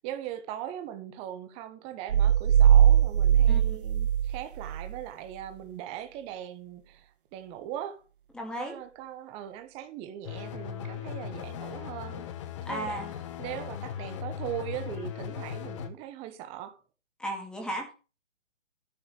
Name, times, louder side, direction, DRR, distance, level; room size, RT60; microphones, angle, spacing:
voice 1, 0.0-8.0 8.5-12.3 12.7-13.0 13.4-16.8, right 11 dB, 15° right, 1.2 m, -40 dB
sound 1, 2.1-5.0, right 10 dB, 50° right, 0.5 m, -21 dB
voice 2, 3.5-3.8 8.3-8.7 12.6-13.1 17.2-17.9, right 1 dB, ahead, 2.6 m, -35 dB
sound 2, 10.2-15.9, left 9 dB, 25° left, 1.2 m, -38 dB
13.5 x 5.4 x 6.8 m
figure-of-eight pair, 145°, 36 cm